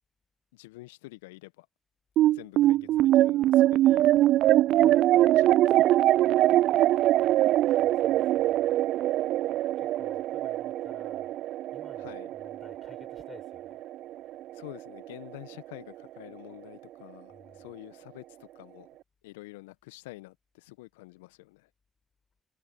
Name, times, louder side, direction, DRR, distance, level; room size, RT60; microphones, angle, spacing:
voice 1, 0.5-1.7 2.2-4.4 4.8-5.9 12.0-12.3 14.5-18.9 19.2-21.7, left 21 dB, 80° left, 1.5 m, -47 dB
sound 1, 2.2-14.8, right 14 dB, 65° right, 0.3 m, -23 dB
voice 2, 2.6-3.1 7.5-8.8 9.8-11.4 11.7-13.8 17.3-17.8, left 5 dB, 40° left, 7.1 m, -55 dB
figure-of-eight pair, 40°, 0 cm